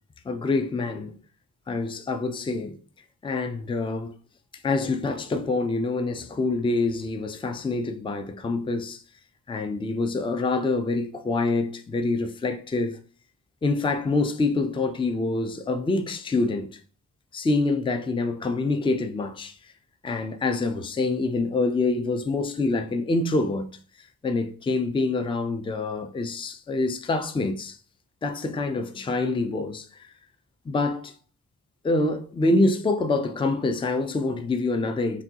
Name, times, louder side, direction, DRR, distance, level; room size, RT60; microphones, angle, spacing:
voice 1, 0.3-1.1 1.7-2.8 3.2-4.1 4.6-9.0 9.5-13.0 13.6-16.7 17.3-19.5 20.0-23.7 24.2-27.8 28.2-30.1 30.7-31.1 31.8-35.2, left 3 dB, 15° left, 0.3 m, -26 dB
6.0 x 2.3 x 2.8 m
wide cardioid pair, 145°, 35 cm